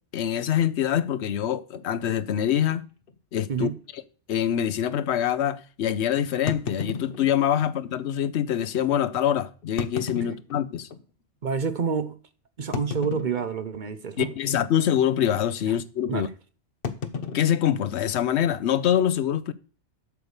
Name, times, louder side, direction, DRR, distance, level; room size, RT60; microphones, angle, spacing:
voice 1, 0.1-2.9 3.3-4.0 4.3-10.9 14.2-16.3 17.3-19.5, left 10 dB, 75° left, 0.9 m, -25 dB
sound 1, 1.7-1.9 2.7-2.8 3.1-3.2 3.8-3.9 6.5-7.7 8.5-8.6 9.6-11.1 11.6-11.7 12.7-13.8 14.1-14.5 14.7-15.0 16.8-18.5, left 5 dB, 55° left, 1.1 m, -34 dB
voice 2, 11.4-12.2 12.6-14.3 16.1-16.3, right 6 dB, 50° right, 0.8 m, -28 dB
8.1 x 6.6 x 7.1 m
omnidirectional pair, 1.1 m